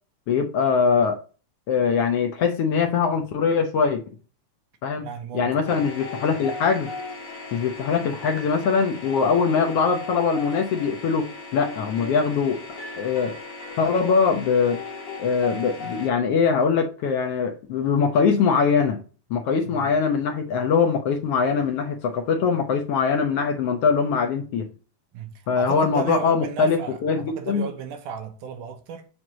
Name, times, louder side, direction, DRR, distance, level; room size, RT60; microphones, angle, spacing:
voice 1, 0.3-1.2 1.7-4.0 4.8-5.1 5.3-6.9 7.5-13.3 13.8-14.8 15.2-19.0 19.3-24.7 25.5-27.7, left 5 dB, 75° left, 1.4 m, -22 dB
voice 2, 5.0-5.9 19.6-19.9 25.1-29.1, right 6 dB, 85° right, 2.4 m, -35 dB
sound 1, 5.7-16.1, left 3 dB, 45° left, 1.1 m, -37 dB
7.6 x 3.0 x 6.1 m
omnidirectional pair, 3.5 m